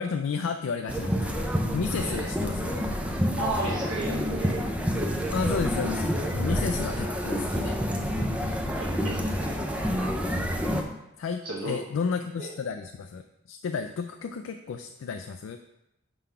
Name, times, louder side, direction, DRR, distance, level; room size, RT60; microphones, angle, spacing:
voice 1, 0.0-2.9 5.3-7.8 11.2-15.6, left 5 dB, 80° left, 6 dB, 0.3 m, -32 dB
sound 1, 0.9-10.8, equal, 5° right, 0.4 m, -28 dB
voice 2, 3.4-4.7 8.7-9.5 11.4-11.8 12.4-12.5, right 2 dB, 80° right, -4 dB, 1.0 m, -33 dB
4.8 x 3.9 x 5.5 m, 0.88 s
head